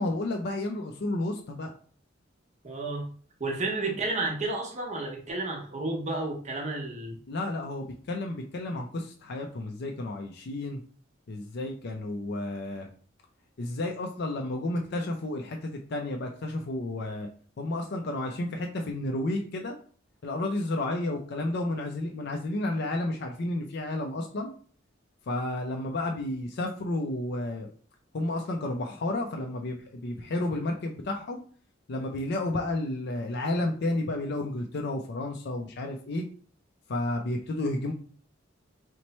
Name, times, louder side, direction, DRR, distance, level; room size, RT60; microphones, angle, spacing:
voice 1, 0.0-1.7 7.3-10.8 11.3-12.9 13.6-17.3 17.6-19.8 20.2-24.5 25.3-27.7 28.1-31.4 31.9-36.2 36.9-37.9, left 2 dB, 60° left, 2 dB, 0.4 m, -31 dB
voice 2, 2.6-3.0 3.4-7.2, right 2 dB, 35° right, 1 dB, 0.8 m, -31 dB
3.0 x 2.1 x 4.0 m, 0.44 s
head